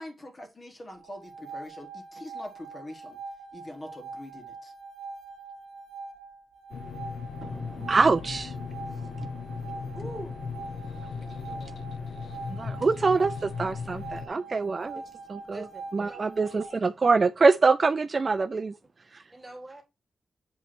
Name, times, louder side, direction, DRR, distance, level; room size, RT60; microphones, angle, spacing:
voice 1, 0.0-3.2 3.5-4.7, left 1 dB, 20° left, 1.5 m, -43 dB
sound 1, 0.9-16.7, right 4 dB, 80° right, 1.7 m, -43 dB
sound 2, 6.7-14.3, left 5 dB, 70° left, 1.0 m, -37 dB
voice 2, 7.4-8.5 9.2-9.3 12.5-15.0 15.5-15.6 15.9-18.7 19.1-19.2, right 4 dB, 30° right, 0.4 m, -24 dB
voice 3, 9.9-10.4 11.3-11.8 14.9-15.0 15.5-16.2 19.3-19.8, right 1 dB, 5° right, 2.0 m, -44 dB
7.8 x 3.2 x 6.0 m
wide cardioid pair, 175°, 0 cm